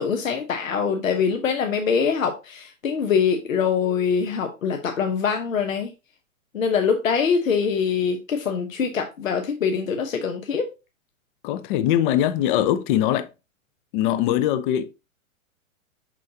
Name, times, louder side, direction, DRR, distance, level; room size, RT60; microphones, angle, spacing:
voice 1, 0.0-5.9 6.5-10.7, left 6 dB, 75° left, 1.0 m, -23 dB
voice 2, 11.4-13.3 13.9-14.8, left 11 dB, 40° left, 0.7 m, -21 dB
6.2 x 5.7 x 2.8 m
figure-of-eight pair, 105°, 40 cm